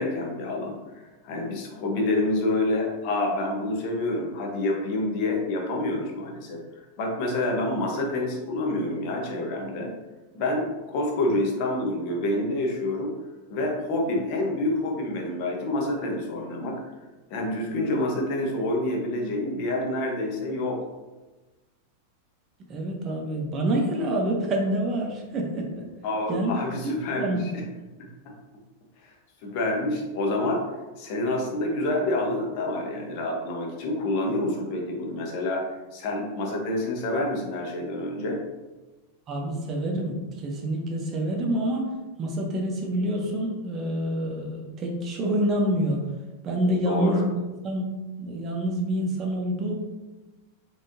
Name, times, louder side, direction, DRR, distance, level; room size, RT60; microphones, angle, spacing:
voice 1, 0.0-6.6 7.0-9.9 10.3-13.1 13.5-16.8 17.3-20.8 26.0-27.6 28.2-28.3 29.0-29.1 29.4-30.6 31.0-38.4 46.8-47.2, left 1 dB, 55° left, 0 dB, 1.0 m, -28 dB
voice 2, 22.7-25.8 26.3-26.5 26.8-27.4 39.3-41.9 42.2-46.0 46.4-47.4 47.6-47.8 48.2-49.7, right 1 dB, 35° right, 0 dB, 0.9 m, -27 dB
3.6 x 3.3 x 2.7 m, 1.2 s
hypercardioid pair, 120°, 0 cm